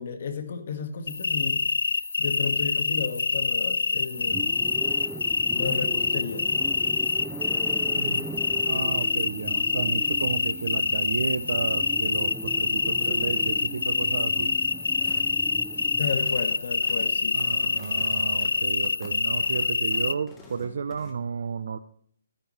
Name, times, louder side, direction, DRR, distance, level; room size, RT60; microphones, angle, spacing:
voice 1, 0.0-1.6 2.2-4.6 5.5-6.5 16.0-17.5, left 6 dB, 50° left, 6 dB, 1.8 m, -33 dB
sound 1, 1.1-20.1, left 4 dB, 85° left, 0.5 m, -26 dB
sound 2, 4.2-16.0, right 3 dB, 5° right, 0.4 m, -39 dB
voice 2, 7.9-8.3 8.7-14.5 17.3-21.8, right 6 dB, 60° right, 9 dB, 0.6 m, -32 dB
sound 3, 15.0-15.4 15.9-21.1, left 1 dB, 10° left, 1.4 m, -48 dB
15.5 x 10.0 x 3.3 m, 0.63 s
hypercardioid pair, 165°, 0 cm